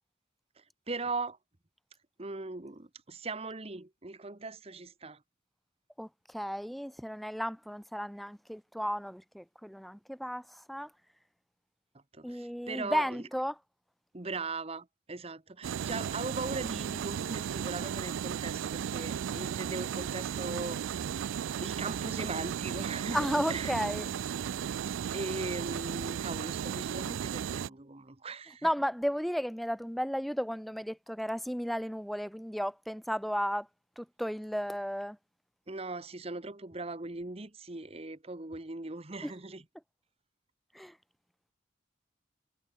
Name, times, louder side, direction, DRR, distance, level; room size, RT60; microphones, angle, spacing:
voice 1, 0.6-1.4 2.2-5.2 12.1-13.2 14.1-23.8 24.9-28.7 35.7-39.6, right 3 dB, 30° right, 1.2 m, -39 dB
voice 2, 6.0-10.9 12.2-13.6 23.1-24.1 28.6-33.7 34.0-35.2 39.2-39.3 40.7-41.0, equal, ahead, 0.6 m, -34 dB
sound 1, 15.6-27.7, right 8 dB, 85° right, 0.3 m, -35 dB
head